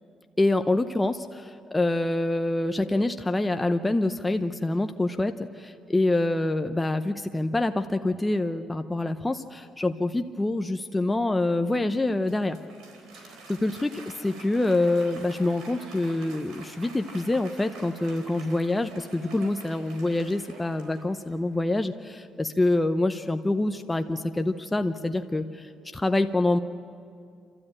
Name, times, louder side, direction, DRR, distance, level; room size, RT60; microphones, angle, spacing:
voice 1, 0.4-12.6 13.5-26.6, left 2 dB, 15° left, 7 dB, 0.7 m, -26 dB
Applause, 12.0-21.6, right 3 dB, 90° right, 3.9 m, -47 dB
29.5 x 13.0 x 8.9 m, 2.4 s
cardioid pair, 90°, 0 cm